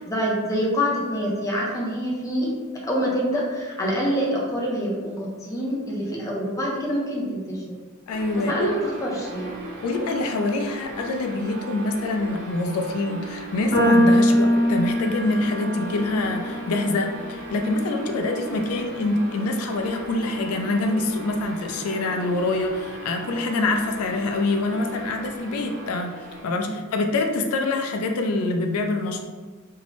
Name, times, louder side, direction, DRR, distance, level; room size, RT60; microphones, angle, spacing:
voice 1, 0.0-2.5 2.9-7.8 8.5-9.6 26.7-26.8, equal, 15° left, -4 dB, 0.5 m, -26 dB
voice 2, 8.1-8.7 9.8-26.1 26.4-29.2, left 2 dB, 90° left, 3 dB, 0.3 m, -25 dB
sound 1, 8.1-26.5, right 2 dB, 50° right, 0.8 m, -38 dB
sound 2, 13.7-20.1, equal, 60° left, 0.8 m, -24 dB
2.6 x 2.0 x 2.9 m, 1.4 s
head